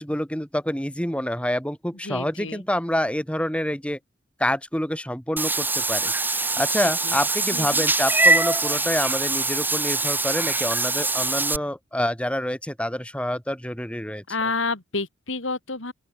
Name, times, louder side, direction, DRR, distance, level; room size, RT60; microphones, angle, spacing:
voice 1, 0.0-4.0 4.4-14.2, left 1 dB, 5° left, 4.6 m, -27 dB
voice 2, 2.0-2.6 7.0-7.2 7.5-7.8 14.3-15.9, left 3 dB, 70° left, 3.4 m, -29 dB
Meow / Water / Bathtub (filling or washing), 5.4-11.6, right 3 dB, 10° right, 3.0 m, -23 dB
open air
head